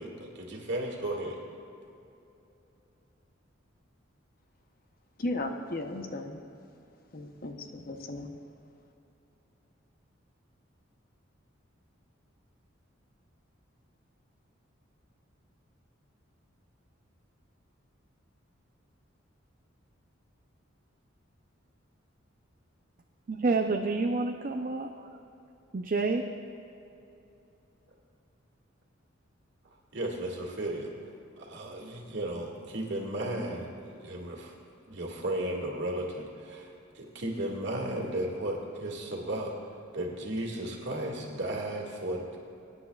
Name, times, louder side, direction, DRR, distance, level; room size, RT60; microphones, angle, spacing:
voice 1, 0.0-1.4 29.9-30.9 31.4-34.5 34.9-36.7 36.9-39.5 39.9-42.4, right 1 dB, 60° right, -1 dB, 1.9 m, -34 dB
voice 2, 5.2-6.4 7.1-8.4, left 2 dB, 45° left, 5 dB, 0.8 m, -35 dB
voice 3, 23.3-25.1 25.7-26.3, right 3 dB, 45° right, 4 dB, 0.5 m, -28 dB
23.0 x 9.8 x 2.3 m, 2.8 s
head